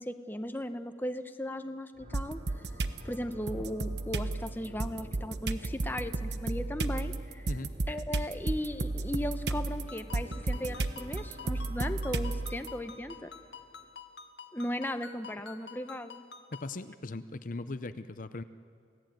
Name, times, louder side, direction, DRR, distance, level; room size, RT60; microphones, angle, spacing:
voice 1, 0.0-2.4 3.0-7.5 7.9-13.3 14.5-16.2, left 1 dB, 10° left, 8 dB, 0.9 m, -37 dB
sound 1, 1.9-13.9, equal, 40° right, 3.1 m, -51 dB
sound 2, 2.1-3.0 3.5-12.7, right 2 dB, 65° right, 1.0 m, -33 dB
Ringtone, 9.9-16.7, left 6 dB, 75° left, 1.5 m, -49 dB
voice 2, 16.5-18.4, left 2 dB, 50° left, 11 dB, 0.7 m, -39 dB
29.0 x 17.5 x 9.2 m, 2.5 s
head